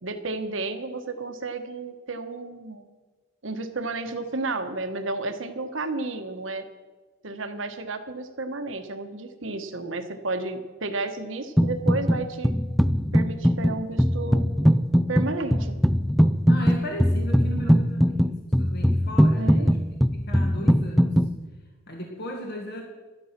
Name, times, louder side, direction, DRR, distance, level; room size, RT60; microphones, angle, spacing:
voice 1, 0.0-2.9 3.4-6.7 7.2-12.5 13.1-14.5 15.1-15.8 17.6-17.8 19.4-19.7, right 3 dB, 70° right, 7 dB, 1.3 m, -32 dB
sound 1, 11.6-12.2 12.4-21.3, equal, ahead, 0.4 m, -21 dB
voice 2, 16.5-19.8 20.1-21.2 21.9-22.8, equal, 55° left, 1 dB, 1.8 m, -36 dB
11.5 x 11.5 x 5.9 m, 1.3 s
head